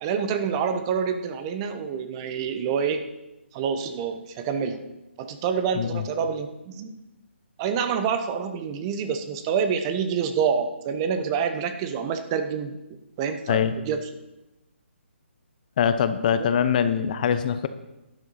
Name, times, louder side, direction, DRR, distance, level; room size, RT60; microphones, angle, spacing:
voice 1, 0.0-3.0 3.5-4.8 5.2-7.0 7.6-12.8 13.2-14.0 16.4-16.5, right 6 dB, 25° right, 8 dB, 0.9 m, -27 dB
voice 2, 15.8-17.7, left 8 dB, 40° left, 11 dB, 0.7 m, -23 dB
11.5 x 10.5 x 4.2 m, 0.98 s
hypercardioid pair, 155°, 7 cm